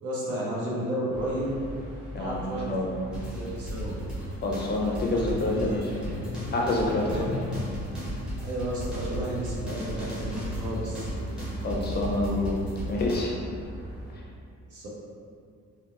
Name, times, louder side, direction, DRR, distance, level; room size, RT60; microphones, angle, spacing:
voice 1, 0.0-1.5 2.1-2.7 3.3-3.9 5.0-5.7 7.0-7.2 8.4-11.0 14.7-14.9, right 1 dB, 75° right, -6 dB, 0.8 m, -32 dB
sound 1, 1.1-14.1, equal, 35° right, 1.2 m, -42 dB
voice 2, 2.1-3.1 4.4-5.9 6.5-7.2 11.6-12.6 12.8-13.3 14.1-14.2, left 2 dB, 35° left, -2 dB, 0.4 m, -27 dB
sound 2, 3.1-13.2, equal, 5° right, 0.8 m, -35 dB
sound 3, 10.2-14.3, right 2 dB, 50° right, 0.4 m, -41 dB
2.8 x 2.2 x 2.4 m, 2.3 s
cardioid pair, 90°, 30 cm